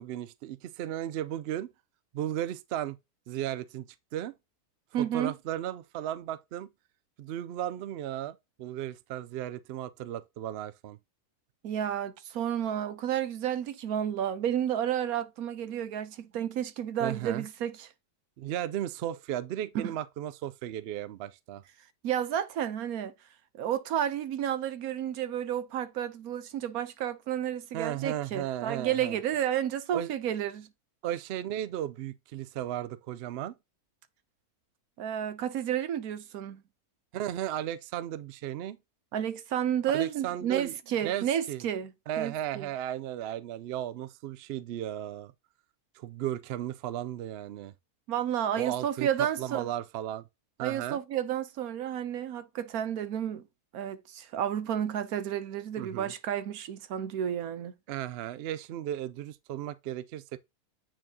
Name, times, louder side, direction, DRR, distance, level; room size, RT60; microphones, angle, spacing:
voice 1, 0.0-1.7 2.1-3.0 3.3-3.9 4.1-4.3 5.0-6.7 7.2-11.0 17.0-17.4 18.4-21.6 27.7-29.2 29.9-30.1 31.0-33.6 37.1-38.8 39.9-40.8 41.0-41.7 42.1-45.3 46.0-47.7 48.6-50.3 50.6-51.0 55.8-56.1 57.9-60.4, right 12 dB, 90° right, 0.5 m, -35 dB
voice 2, 4.9-5.3 11.6-17.9 19.7-19.9 22.0-23.1 23.5-30.7 35.0-36.6 39.1-42.7 48.1-49.7 50.6-53.4 53.7-57.7, right 10 dB, 75° right, 1.2 m, -31 dB
8.9 x 4.3 x 2.8 m
omnidirectional pair, 1.6 m